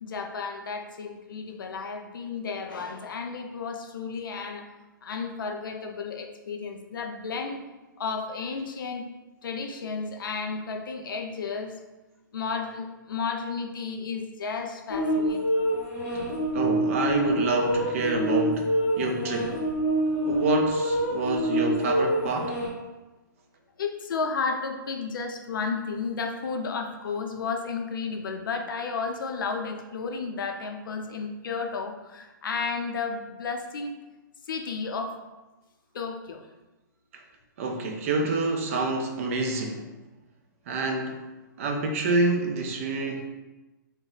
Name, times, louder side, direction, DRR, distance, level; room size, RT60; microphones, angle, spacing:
voice 1, 0.0-4.7 5.0-7.6 8.0-9.0 9.4-11.8 12.3-15.7 21.2-21.3 23.8-33.9 34.4-35.1 35.9-36.4, left 5 dB, 80° left, 4 dB, 0.4 m, -33 dB
sound 1, 14.9-22.7, right 1 dB, 25° left, 0.8 m, -26 dB
voice 2, 16.5-19.6 20.2-22.5 37.6-39.9 40.7-41.2 41.6-43.3, right 3 dB, 40° right, 2 dB, 0.4 m, -27 dB
2.4 x 2.0 x 3.8 m, 1.1 s
hypercardioid pair, 155°, 11 cm